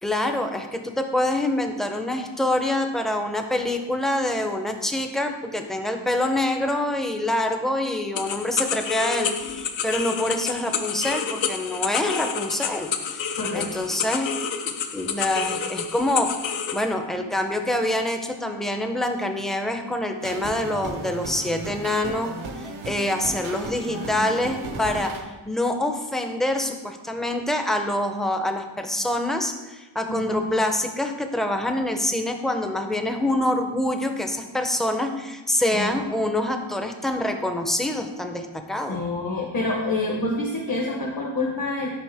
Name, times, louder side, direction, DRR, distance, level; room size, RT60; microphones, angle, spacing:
voice 1, 0.0-14.3 14.6-16.3 16.7-22.4 22.8-39.0, left 1 dB, ahead, 5 dB, 0.4 m, -26 dB
sound 1, 8.1-16.9, left 7 dB, 75° left, 0.6 m, -29 dB
voice 2, 13.3-13.7 23.9-24.4 30.1-30.6 35.7-36.0 38.9-41.9, left 2 dB, 45° left, -1 dB, 0.9 m, -28 dB
sound 2, 20.2-25.2, right 3 dB, 85° right, 0.8 m, -35 dB
6.3 x 5.1 x 3.3 m, 1.1 s
wide cardioid pair, 90°, 46 cm